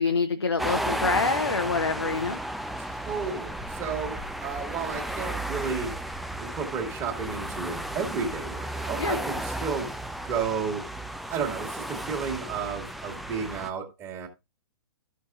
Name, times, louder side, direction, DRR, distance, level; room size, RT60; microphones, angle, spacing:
voice 1, 0.0-2.4 9.0-9.2, left 4 dB, 75° left, 0.9 m, -26 dB
sound 1, 0.6-13.7, right 1 dB, ahead, 0.4 m, -34 dB
voice 2, 2.8-6.0 6.4-9.9 10.2-10.9 11.3-14.3, right 5 dB, 20° right, 2.0 m, -32 dB
13.5 x 6.5 x 2.5 m
figure-of-eight pair, 120°, 13 cm